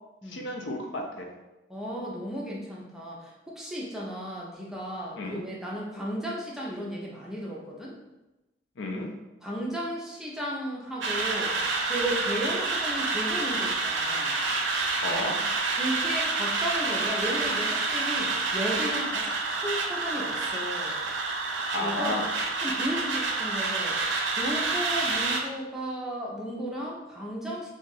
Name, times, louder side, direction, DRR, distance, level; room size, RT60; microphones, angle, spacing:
voice 1, 0.3-1.3 5.2-5.4 8.8-9.1 15.0-15.4 21.7-22.3, left 2 dB, 70° left, 2 dB, 0.5 m, -32 dB
voice 2, 1.7-7.9 9.4-11.5 11.9-14.4 15.8-21.0 21.8-22.2 22.6-24.0 24.3-27.7, equal, ahead, -4 dB, 0.5 m, -34 dB
sound 1, 11.0-25.4, right 3 dB, 65° right, 0.5 m, -28 dB
2.7 x 2.4 x 3.9 m, 1.0 s
head